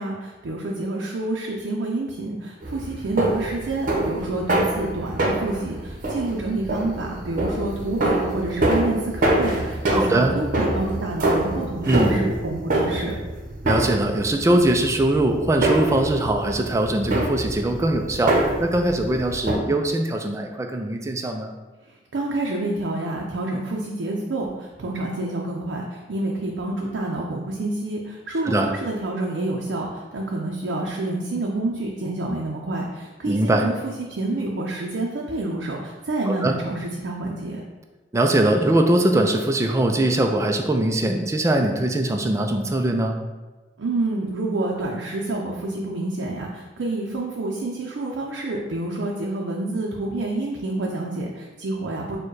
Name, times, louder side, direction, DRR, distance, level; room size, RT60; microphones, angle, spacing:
voice 1, 0.0-13.2 22.1-37.6 43.8-52.2, right 2 dB, 80° right, -2 dB, 0.5 m, -28 dB
sound 1, 2.6-19.6, right 1 dB, 50° right, 0.8 m, -25 dB
voice 2, 9.9-10.4 11.8-12.2 13.6-21.5 28.4-28.7 33.2-33.7 36.3-36.6 38.1-43.2, right 1 dB, 15° right, 4 dB, 0.3 m, -21 dB
4.5 x 2.2 x 4.6 m, 1.2 s
head